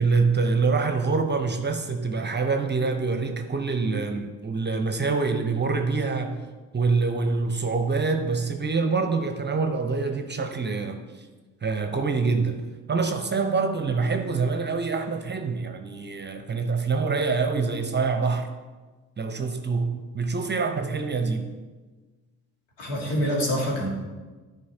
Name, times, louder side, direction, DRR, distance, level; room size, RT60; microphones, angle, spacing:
voice 1, 0.0-6.4 6.7-11.3 11.6-12.6 12.9-18.5 19.2-21.5, right 4 dB, 25° right, 0.8 m, -25 dB
voice 2, 22.8-23.9, equal, 65° left, 2.1 m, -26 dB
12.5 x 5.3 x 2.8 m
figure-of-eight pair, 45°, 45 cm